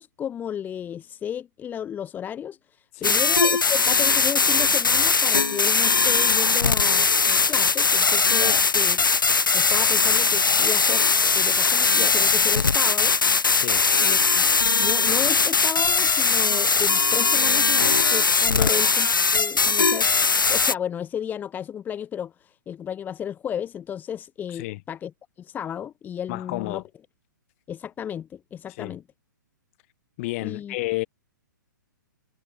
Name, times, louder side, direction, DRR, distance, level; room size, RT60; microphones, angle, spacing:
voice 1, 0.0-9.0 9.5-13.2 14.0-14.4 14.8-20.1 20.5-25.1 25.4-26.8 27.7-29.0 30.4-30.8, left 9 dB, 15° left, 1.4 m, -33 dB
sound 1, 3.0-20.7, left 4 dB, 80° left, 2.6 m, -20 dB
voice 2, 13.5-13.9 18.5-18.7 24.5-24.8 26.3-26.8 28.8-29.0 30.2-31.1, left 21 dB, 40° left, 4.8 m, -31 dB
figure-of-eight pair, 120°, 11 cm